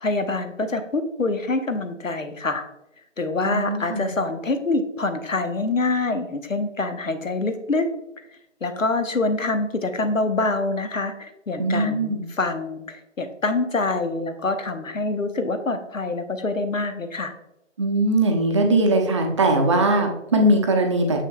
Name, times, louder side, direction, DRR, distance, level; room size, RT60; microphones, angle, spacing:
voice 1, 0.0-2.6 3.2-7.9 8.6-17.3, left 3 dB, 90° left, 7 dB, 1.0 m, -25 dB
voice 2, 3.5-4.1 11.6-12.2 17.8-21.2, right 1 dB, 25° right, 2 dB, 0.6 m, -20 dB
6.8 x 6.2 x 2.3 m, 0.87 s
figure-of-eight pair, 145°, 38 cm